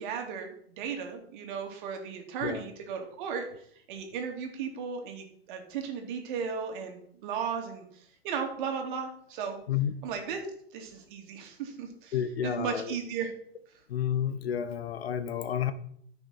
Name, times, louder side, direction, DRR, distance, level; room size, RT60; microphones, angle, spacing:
voice 1, 0.0-3.5 3.9-9.6 10.0-10.4 10.7-12.2 12.4-13.3, right 6 dB, 50° right, 4 dB, 2.8 m, -35 dB
voice 2, 12.1-12.9 13.9-15.7, left 9 dB, 70° left, 13 dB, 1.1 m, -30 dB
14.0 x 6.1 x 4.4 m, 0.64 s
hypercardioid pair, 115°, 32 cm